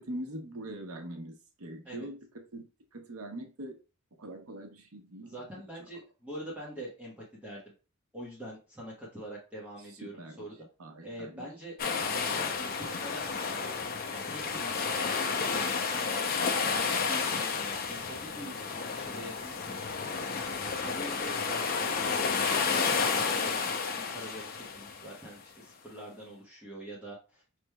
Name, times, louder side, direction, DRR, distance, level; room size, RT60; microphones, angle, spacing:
voice 1, 0.0-3.8 4.2-5.4 10.0-10.5 10.8-11.5, right 1 dB, 80° right, 0.8 m, -42 dB
voice 2, 5.2-7.7 8.1-10.5 11.0-11.8 12.1-13.3 14.1-15.0 15.3-19.8 20.6-27.4, right 1 dB, 5° right, 1.1 m, -44 dB
sound 1, 11.8-25.2, left 5 dB, 45° left, 0.6 m, -31 dB
5.1 x 3.2 x 2.2 m
head